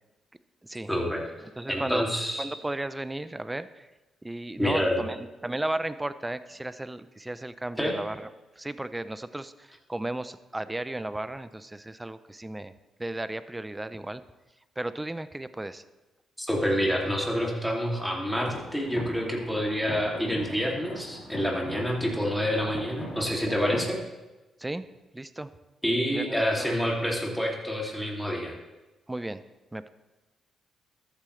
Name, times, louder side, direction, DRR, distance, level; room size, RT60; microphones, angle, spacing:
voice 1, 0.9-1.2 1.7-2.4 4.6-5.0 7.8-8.0 16.4-24.0 25.8-28.5, equal, ahead, -2 dB, 2.6 m, -27 dB
voice 2, 1.6-2.0 2.4-3.9 4.2-8.3 8.6-12.7 13.0-14.2 14.8-15.8 24.6-24.8 25.1-25.5 26.1-27.0 29.1-29.4 29.7-29.9, right 1 dB, 15° right, 13 dB, 0.5 m, -34 dB
sound 1, 18.5-24.0, left 1 dB, 40° left, 4.0 m, -40 dB
13.5 x 8.5 x 3.2 m, 1.1 s
cardioid pair, 80°, 0 cm